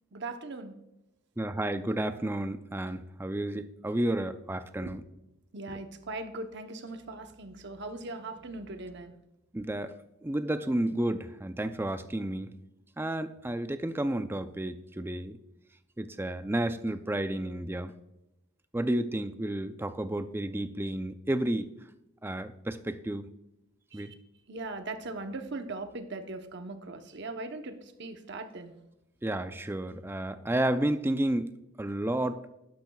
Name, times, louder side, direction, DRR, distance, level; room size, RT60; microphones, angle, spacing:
voice 1, 0.1-0.7 4.8-4.9 5.5-9.1 23.9-24.1 24.5-28.7, right 2 dB, 55° right, 7 dB, 0.9 m, -39 dB
voice 2, 1.4-5.0 9.5-9.9 10.2-12.5 13.0-15.4 16.0-17.9 18.7-21.7 22.2-23.2 23.9-24.1 29.2-32.5, right 1 dB, 10° right, 10 dB, 0.4 m, -31 dB
12.0 x 10.5 x 2.3 m, 0.90 s
head